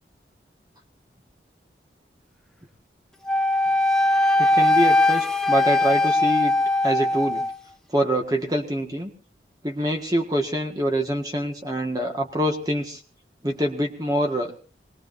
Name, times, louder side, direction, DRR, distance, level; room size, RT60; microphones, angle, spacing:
Wind instrument woodwind instrument, 3.3-7.5, left 2 dB, 5° left, 0.7 m, -20 dB
voice 1, 4.4-6.5 6.8-7.4 7.9-9.1 9.6-13.0 13.4-14.5, right 1 dB, 20° right, 3 dB, 1.7 m, -25 dB
25.0 x 19.5 x 2.7 m, 0.36 s
head